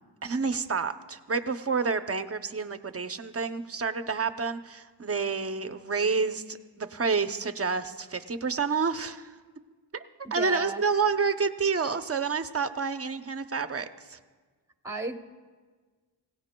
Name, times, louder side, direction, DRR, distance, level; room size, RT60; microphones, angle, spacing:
voice 1, 0.2-9.4 9.9-10.0 10.3-14.2, right 5 dB, 35° right, 9 dB, 0.6 m, -29 dB
voice 2, 10.2-10.8 14.8-15.1, right 3 dB, 5° right, 4 dB, 0.9 m, -34 dB
24.0 x 17.0 x 2.2 m, 1.4 s
wide cardioid pair, 115°, 42 cm